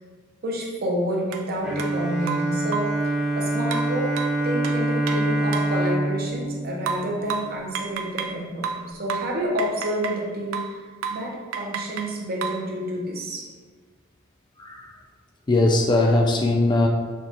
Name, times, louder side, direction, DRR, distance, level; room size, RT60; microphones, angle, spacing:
voice 1, 0.4-4.2 4.4-10.8 11.1-13.5, equal, 45° right, -1 dB, 0.7 m, -29 dB
sound 1, 1.3-1.4 1.8-1.9 2.3-3.0 3.7-5.8 6.9-8.4 8.6-10.2 10.5-10.8 11.0-11.3 11.5-12.7, right 6 dB, 75° right, 0.4 m, -31 dB
Bowed string instrument, 1.6-7.8, right 1 dB, 5° right, 0.8 m, -26 dB
voice 2, 15.5-16.9, left 2 dB, 20° left, 1 dB, 0.3 m, -20 dB
6.1 x 2.4 x 2.8 m, 1.4 s
head